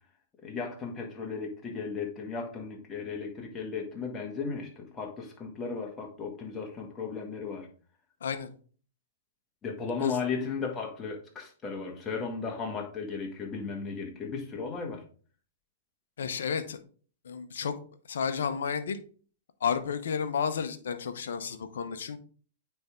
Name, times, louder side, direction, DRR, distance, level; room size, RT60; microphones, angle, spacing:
voice 1, 0.4-7.7 9.6-15.0, left 5 dB, 20° left, 2 dB, 1.7 m, -35 dB
voice 2, 16.2-16.8 17.2-17.8 18.1-19.0 19.6-22.2, left 6 dB, 70° left, 9 dB, 0.8 m, -31 dB
8.8 x 3.5 x 3.6 m, 0.42 s
hypercardioid pair, 115°, 0 cm